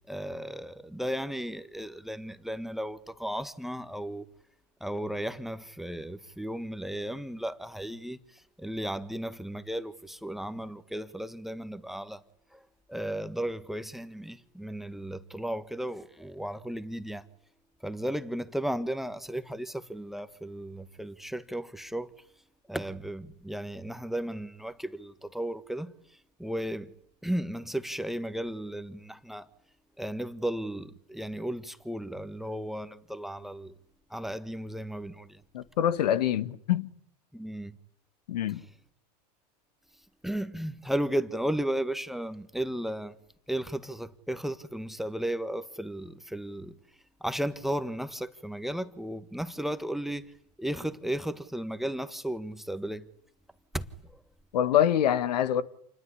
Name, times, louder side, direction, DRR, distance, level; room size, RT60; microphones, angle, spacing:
voice 1, 0.1-4.3 4.8-12.2 12.5-12.6 12.9-17.3 17.8-22.1 22.7-26.9 27.2-29.5 30.0-33.7 34.1-35.4 37.3-37.8 40.2-43.2 43.5-46.8 47.2-50.3 50.6-53.1 53.7-54.2, right 1 dB, ahead, 1.4 m, -35 dB
voice 2, 35.5-36.9 38.3-38.6 54.5-55.6, left 10 dB, 80° left, 1.7 m, -25 dB
28.5 x 20.5 x 10.0 m
hypercardioid pair, 110°, 21 cm